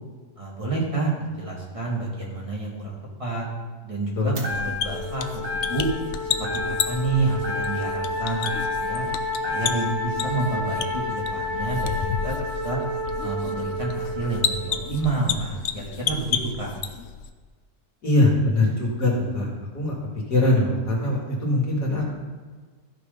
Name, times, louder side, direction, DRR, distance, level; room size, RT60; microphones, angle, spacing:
voice 1, 0.4-3.4 3.8-5.9 6.2-9.1 9.4-12.4 12.6-12.8 13.2-16.7, right 3 dB, 20° right, -4 dB, 2.2 m, -29 dB
sound 1, 4.4-5.1 5.4-6.1 6.4-7.1 7.4-9.1 9.4-10.1, left 3 dB, 65° right, 2.0 m, -32 dB
sound 2, 4.5-17.3, left 7 dB, 60° left, 0.7 m, -32 dB
Wind instrument woodwind instrument, 4.8-15.2, left 2 dB, 85° right, 3.4 m, -31 dB
voice 2, 18.0-19.5 19.7-20.0 20.3-22.1, left 2 dB, 80° left, -2 dB, 2.9 m, -22 dB
13.5 x 6.5 x 5.3 m, 1.5 s
omnidirectional pair, 1.7 m